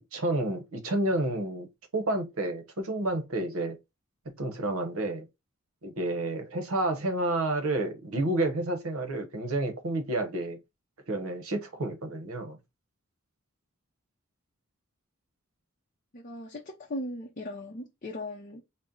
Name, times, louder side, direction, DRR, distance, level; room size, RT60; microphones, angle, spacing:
voice 1, 0.1-1.7 1.9-3.8 4.4-5.3 5.8-10.6 11.1-12.6, right 2 dB, 70° right, 0.9 m, -30 dB
voice 2, 16.1-18.6, left 1 dB, 35° left, 0.6 m, -38 dB
4.1 x 2.1 x 3.7 m
head